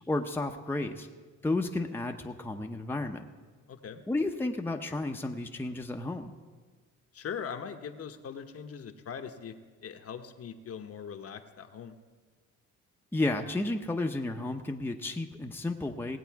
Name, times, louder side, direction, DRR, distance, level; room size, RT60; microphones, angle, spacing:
voice 1, 0.1-1.1 1.4-3.2 4.1-6.3 13.1-16.2, left 2 dB, 5° left, 3 dB, 0.7 m, -32 dB
voice 2, 3.7-4.0 7.1-9.5 9.8-12.0, left 7 dB, 50° left, 6 dB, 1.0 m, -41 dB
18.5 x 8.2 x 4.7 m, 1.4 s
cardioid pair, 90°, 30 cm